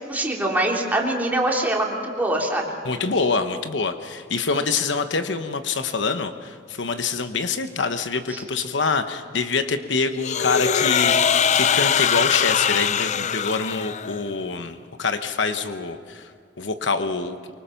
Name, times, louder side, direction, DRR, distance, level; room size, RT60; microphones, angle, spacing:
voice 1, 0.0-2.8 8.3-8.4, right 1 dB, 10° right, -1 dB, 3.3 m, -24 dB
voice 2, 2.8-16.3 16.6-17.4, left 4 dB, 75° left, 8 dB, 1.0 m, -25 dB
sound 1, 10.2-14.3, left 7 dB, 40° left, 0.5 m, -21 dB
24.5 x 24.0 x 5.8 m, 2.3 s
head